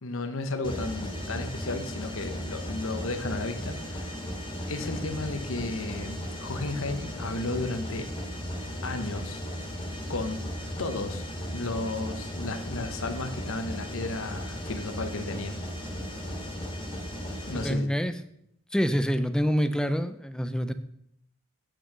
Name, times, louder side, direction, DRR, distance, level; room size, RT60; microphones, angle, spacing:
voice 1, 0.0-4.2 4.7-8.1 8.8-9.4 10.1-10.4 10.8-15.6 16.3-16.4 17.4-17.9, left 2 dB, 65° left, 7 dB, 1.0 m, -34 dB
Mechanisms, 0.6-17.7, equal, 25° left, 2.0 m, -36 dB
voice 2, 17.5-18.1 18.7-20.7, equal, 5° left, 11 dB, 0.5 m, -26 dB
8.6 x 6.2 x 6.7 m, 0.74 s
head